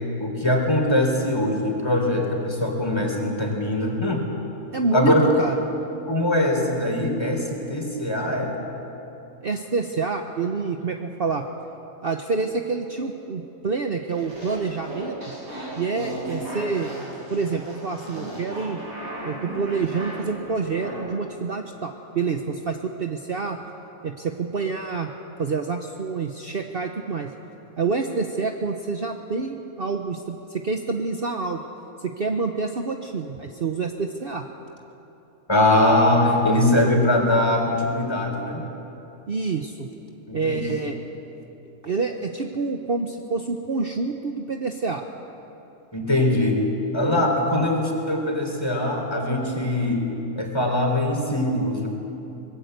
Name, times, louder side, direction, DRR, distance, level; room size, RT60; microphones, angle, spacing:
voice 1, 0.2-4.3 4.9-5.3 6.1-8.5 35.5-38.6 40.3-40.7 45.9-46.6 46.9-50.0 50.4-51.9, left 1 dB, 20° left, 1 dB, 3.9 m, -22 dB
voice 2, 4.7-5.6 9.4-11.5 12.0-15.2 15.8-16.9 17.3-18.8 19.2-23.6 24.0-25.1 25.4-27.3 27.8-31.6 32.0-34.5 39.3-39.9 40.3-41.0 41.8-45.0 47.4-47.8, right 4 dB, 45° right, 4 dB, 1.1 m, -27 dB
sound 1, 14.1-21.0, right 1 dB, 80° right, 7.8 m, -35 dB
24.0 x 21.0 x 8.1 m, 2.9 s
omnidirectional pair, 1.5 m